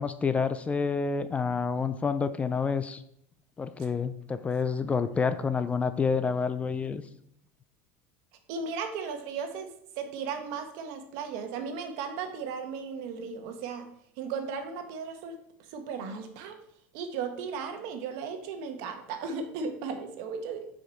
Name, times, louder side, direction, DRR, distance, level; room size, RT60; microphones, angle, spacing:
voice 1, 0.0-3.0 3.6-7.0, left 5 dB, 20° left, 12 dB, 0.4 m, -28 dB
voice 2, 8.5-13.9 14.2-15.4 15.7-16.6 16.9-20.7, right 5 dB, 65° right, 6 dB, 1.3 m, -36 dB
6.7 x 5.0 x 4.5 m, 0.70 s
supercardioid pair, 120°, 7 cm